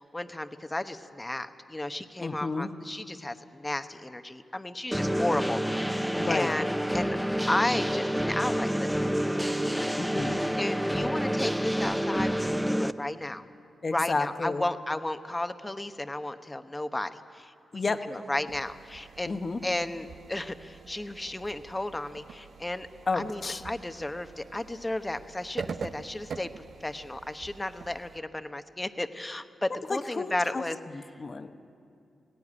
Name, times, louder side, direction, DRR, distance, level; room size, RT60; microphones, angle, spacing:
voice 1, 0.0-6.0 6.2-7.2 7.5-9.1 10.6-13.4 13.9-22.9 23.1-30.8, left 1 dB, 15° left, 9 dB, 1.0 m, -33 dB
voice 2, 2.2-2.7 6.2-6.5 10.0-10.4 13.8-14.6 17.7-18.0 19.2-19.6 23.1-23.6 29.9-30.6 30.9-31.6, left 3 dB, 40° left, 8 dB, 1.1 m, -31 dB
sound 1, 4.9-12.9, equal, 5° right, 0.6 m, -28 dB
sound 2, 18.5-28.2, right 5 dB, 70° right, 0.7 m, -44 dB
17.5 x 16.5 x 9.9 m, 2.5 s
cardioid pair, 70°, 0 cm